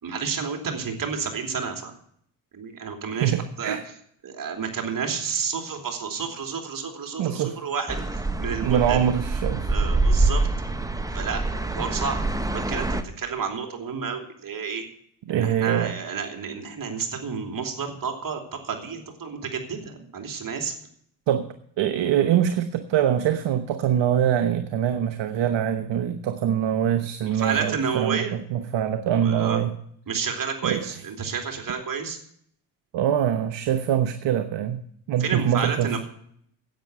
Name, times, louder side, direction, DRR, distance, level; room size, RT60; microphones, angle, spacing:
voice 1, 0.0-1.9 2.5-3.8 4.2-9.0 9.7-10.5 11.1-12.2 12.5-14.8 15.3-20.7 27.2-28.3 29.2-29.6 30.1-32.2 35.2-36.0, right 6 dB, 40° right, 4 dB, 3.0 m, -30 dB
voice 2, 3.1-3.8 7.2-7.6 8.6-9.7 15.3-15.9 21.3-21.5 21.8-29.7 30.6-30.8 32.9-34.8 35.1-36.0, right 9 dB, 60° right, 9 dB, 1.1 m, -24 dB
sound 1, 7.9-13.0, right 2 dB, 5° right, 1.1 m, -25 dB
11.0 x 8.3 x 7.8 m, 0.66 s
supercardioid pair, 75°, 49 cm